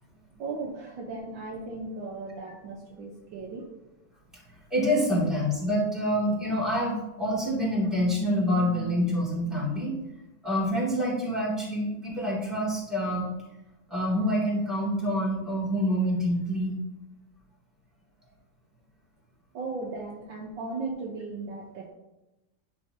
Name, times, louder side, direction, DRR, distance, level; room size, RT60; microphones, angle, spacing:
voice 1, 0.4-3.7 19.5-21.9, right 3 dB, 65° right, -2 dB, 1.5 m, -36 dB
voice 2, 4.7-10.0 10.4-13.2 13.9-16.8, equal, ahead, -5 dB, 2.2 m, -26 dB
10.0 x 5.8 x 2.8 m, 1.0 s
omnidirectional pair, 2.4 m